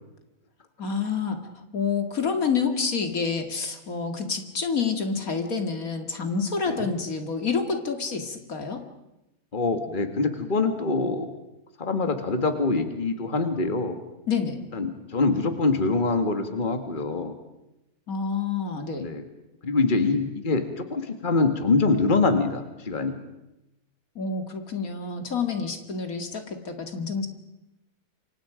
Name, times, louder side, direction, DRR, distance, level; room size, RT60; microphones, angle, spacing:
voice 1, 0.8-1.4 1.7-8.8 14.3-14.7 18.1-19.1 24.2-27.3, left 5 dB, 70° left, 6 dB, 2.7 m, -28 dB
voice 2, 9.5-11.3 11.8-14.0 14.7-17.3 19.0-19.2 19.6-23.1, left 3 dB, 35° left, 7 dB, 2.0 m, -24 dB
29.0 x 24.5 x 5.1 m, 0.93 s
omnidirectional pair, 1.5 m